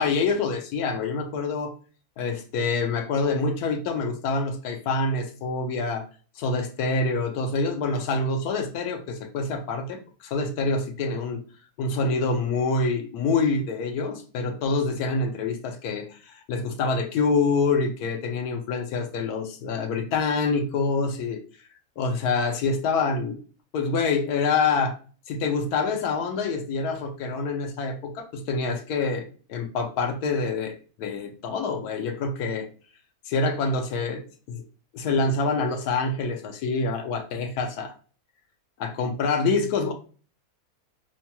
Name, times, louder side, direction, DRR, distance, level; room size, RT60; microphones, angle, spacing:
voice 1, 0.0-1.7 2.2-6.0 6.4-11.4 11.8-21.4 22.0-23.4 23.7-24.9 25.3-32.7 33.3-34.6 34.9-37.9 38.8-39.9, left 4 dB, 90° left, 5 dB, 1.2 m, -26 dB
5.1 x 2.2 x 2.9 m, 0.39 s
omnidirectional pair, 1.6 m